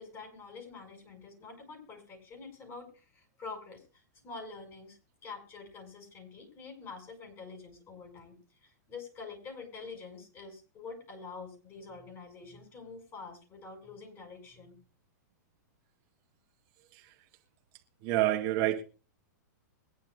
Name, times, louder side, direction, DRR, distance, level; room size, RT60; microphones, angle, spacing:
voice 1, 0.0-3.8 4.2-8.4 8.6-14.8, left 4 dB, 25° left, 3 dB, 6.6 m, -46 dB
voice 2, 18.0-18.8, right 13 dB, 40° right, 2 dB, 2.0 m, -28 dB
23.0 x 10.5 x 2.5 m, 0.33 s
hypercardioid pair, 140°, 10 cm